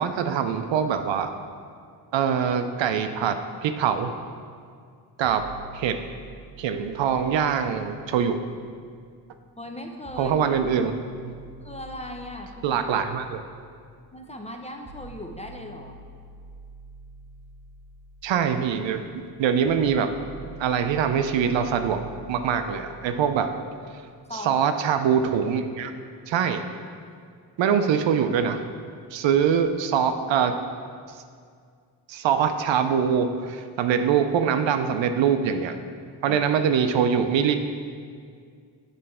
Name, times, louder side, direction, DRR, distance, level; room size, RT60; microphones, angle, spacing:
voice 1, 0.0-1.3 2.1-4.1 5.2-5.4 5.7-6.0 6.6-8.4 10.2-10.9 11.2-11.3 12.6-13.4 18.2-19.0 19.4-20.1 20.6-23.5 23.9-24.0 24.4-25.9 26.3-26.6 27.6-28.6 29.1-30.6 31.1-31.2 32.1-35.8 36.2-37.6, right 7 dB, 80° right, 7 dB, 0.5 m, -23 dB
sound 1, 5.2-9.2 10.0-24.1, right 2 dB, 25° right, 0.7 m, -47 dB
voice 2, 9.6-10.4 11.6-12.8 14.1-16.0 24.3-24.6 36.3-36.4, left 1 dB, 15° left, 3 dB, 0.5 m, -38 dB
7.5 x 3.2 x 5.4 m, 2.2 s
cardioid pair, 80°, 44 cm